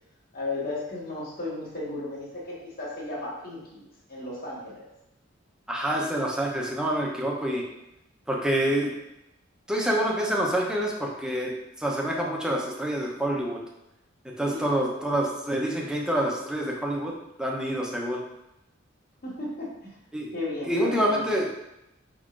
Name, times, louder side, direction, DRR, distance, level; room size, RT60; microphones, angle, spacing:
voice 1, 0.3-4.9 14.5-14.7 19.2-20.0 20.3-21.2, left 2 dB, 50° left, -5 dB, 1.3 m, -34 dB
voice 2, 5.7-7.6 8.3-8.9 9.7-11.5 11.8-13.6 14.4-17.1 17.4-18.2 20.1-20.3 20.7-21.5, right 1 dB, 5° right, -2 dB, 0.7 m, -27 dB
5.2 x 3.7 x 2.5 m, 0.87 s
head